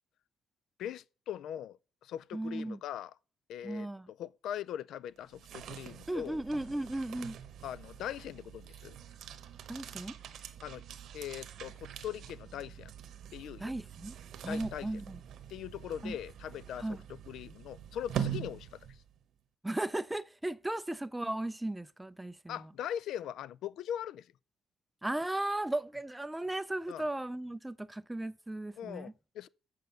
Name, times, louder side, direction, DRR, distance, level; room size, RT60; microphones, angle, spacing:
voice 1, 0.8-3.1 3.5-3.9 4.2-6.4 7.6-9.0 10.6-10.8 11.1-12.9 13.3-13.7 14.5-14.9 15.5-16.9 17.3-18.9 22.5-24.3 26.9-27.0 28.8-29.5, left 10 dB, 75° left, 0.4 m, -41 dB
voice 2, 2.3-2.8 3.6-4.1 6.1-7.4 9.7-10.2 13.6-14.2 14.4-15.2 16.0-16.2 16.8-17.0 19.6-22.7 25.0-29.1, right 1 dB, 10° right, 0.4 m, -36 dB
sound 1, 5.2-19.2, right 9 dB, 65° right, 0.9 m, -44 dB
6.5 x 6.2 x 6.8 m
cardioid pair, 125°, 0 cm